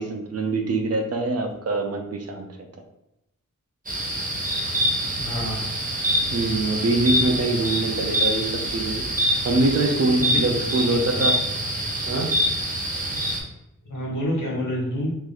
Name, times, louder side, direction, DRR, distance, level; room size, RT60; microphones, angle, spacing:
voice 1, 0.0-2.5 6.3-11.4 12.1-12.3, right 2 dB, 50° right, 4 dB, 0.5 m, -24 dB
sound 1, 3.9-13.4, equal, 25° right, 0.8 m, -25 dB
voice 2, 5.1-5.7 10.1-10.4 11.1-11.3 13.8-15.2, equal, 75° left, -4 dB, 1.3 m, -28 dB
3.0 x 2.5 x 3.8 m, 0.87 s
wide cardioid pair, 140°, 32 cm